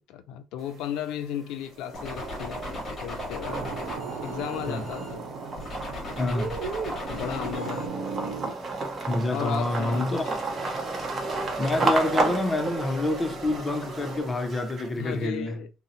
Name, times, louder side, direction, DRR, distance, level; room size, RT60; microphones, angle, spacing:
voice 1, 0.0-3.7 4.2-5.2 7.1-8.3 9.3-10.3 15.0-15.7, left 10 dB, 75° left, 0.3 m, -35 dB
sound 1, 0.6-1.2 1.6-15.2, right 3 dB, 30° right, 0.8 m, -33 dB
sound 2, 1.9-5.1 5.6-7.9, left 2 dB, 30° left, 1.1 m, -38 dB
sound 3, 3.4-8.5, right 4 dB, 60° right, 0.7 m, -36 dB
voice 2, 6.2-6.6 9.1-10.3 11.6-15.6, left 1 dB, 15° left, 0.5 m, -27 dB
2.7 x 2.0 x 3.8 m
cardioid pair, 130°, 0 cm